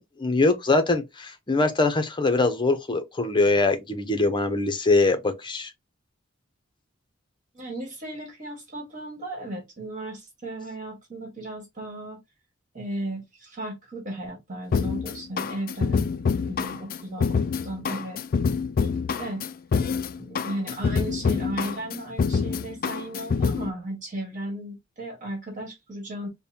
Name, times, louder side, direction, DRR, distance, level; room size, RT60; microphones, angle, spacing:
voice 1, 0.0-5.7, left 3 dB, 25° left, 0.7 m, -23 dB
voice 2, 7.5-12.2 12.7-16.1 16.5-18.2 18.8-19.4 20.2-26.3, right 1 dB, 40° right, 1.7 m, -35 dB
sound 1, 14.7-23.7, left 5 dB, 45° left, 0.3 m, -26 dB
5.2 x 2.2 x 2.7 m
head